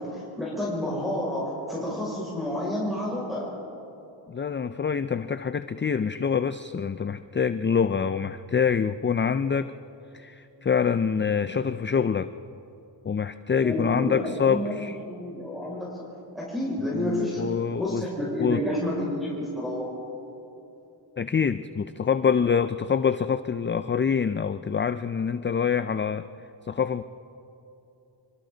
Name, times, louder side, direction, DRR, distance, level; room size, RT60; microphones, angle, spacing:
voice 1, 0.0-3.5 13.6-15.9 16.3-17.4 17.8-19.9, left 1 dB, ahead, -7 dB, 6.0 m, -30 dB
voice 2, 4.3-9.7 10.1-12.3 13.0-15.0 16.9-18.0 18.4-18.6 21.2-26.3 26.6-27.0, left 6 dB, 25° left, 12 dB, 0.4 m, -25 dB
27.0 x 24.5 x 4.0 m, 2.9 s
wide cardioid pair, 125°, 48 cm